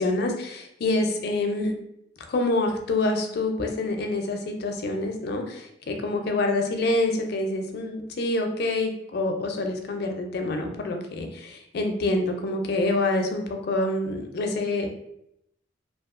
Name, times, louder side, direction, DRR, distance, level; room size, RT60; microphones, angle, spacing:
voice 1, 0.0-1.7 2.3-14.9, left 2 dB, 60° left, 4 dB, 0.4 m, -26 dB
2.7 x 2.3 x 2.4 m, 0.77 s
head